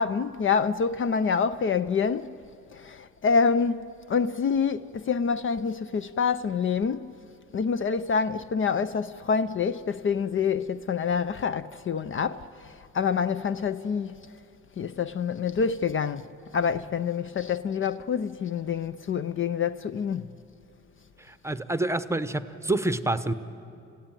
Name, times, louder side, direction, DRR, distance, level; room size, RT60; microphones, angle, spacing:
voice 1, 0.0-2.4 2.7-7.1 7.5-14.2 14.8-16.2 16.5-20.3, left 6 dB, 40° left, 0.6 m, -27 dB
voice 2, 21.3-23.3, right 2 dB, 10° right, 0.9 m, -27 dB
28.5 x 16.0 x 9.1 m
cardioid pair, 90°, 30 cm